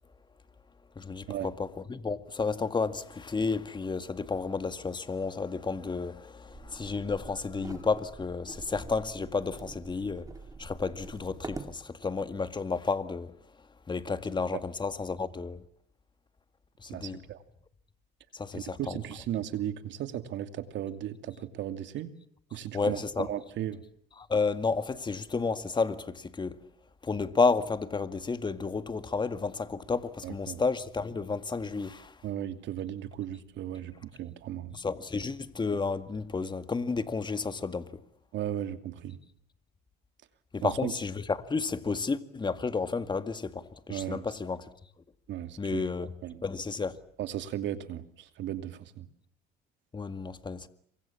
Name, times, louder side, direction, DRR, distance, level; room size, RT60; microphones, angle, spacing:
voice 1, 1.0-10.3 10.6-13.3 13.9-15.6 16.8-17.2 18.3-19.0 22.7-23.3 24.2-26.6 27.0-32.2 34.7-38.0 40.5-44.7 45.6-46.1 46.4-47.0 49.9-50.7, left 4 dB, 20° left, 2.0 m, -31 dB
sound 1, 6.5-11.8, right 3 dB, 15° right, 2.6 m, -45 dB
voice 2, 16.9-17.4 18.5-22.1 22.5-23.8 30.2-30.6 32.2-34.8 38.3-39.2 40.6-40.9 43.9-44.2 45.3-45.8 46.2-46.4 47.2-49.1, right 11 dB, 60° right, 2.7 m, -36 dB
27.5 x 24.5 x 7.3 m
supercardioid pair, 100°, 21 cm